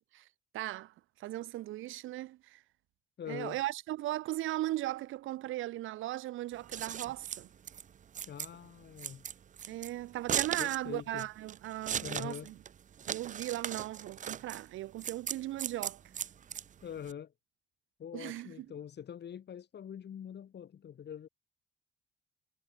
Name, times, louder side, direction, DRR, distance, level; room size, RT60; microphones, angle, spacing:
voice 1, 0.5-0.9 1.2-2.6 3.3-7.5 9.7-12.5 13.1-16.0 18.1-18.7, right 15 dB, 90° right, 2.9 m, -37 dB
voice 2, 3.2-3.6 8.3-9.2 10.6-11.3 12.0-12.5 16.8-17.3 18.0-21.3, left 8 dB, 60° left, 6.7 m, -44 dB
Scissors, 6.5-17.1, right 8 dB, 40° right, 0.5 m, -38 dB
cardioid pair, 90°, 20 cm